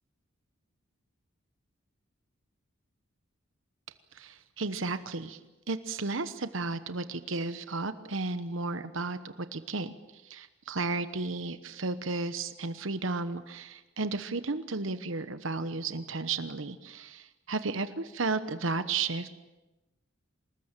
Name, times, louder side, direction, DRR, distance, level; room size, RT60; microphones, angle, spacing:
voice 1, 4.1-5.4 5.7-19.3, right 3 dB, 70° right, 11 dB, 1.1 m, -33 dB
25.5 x 20.5 x 9.0 m, 1.0 s
head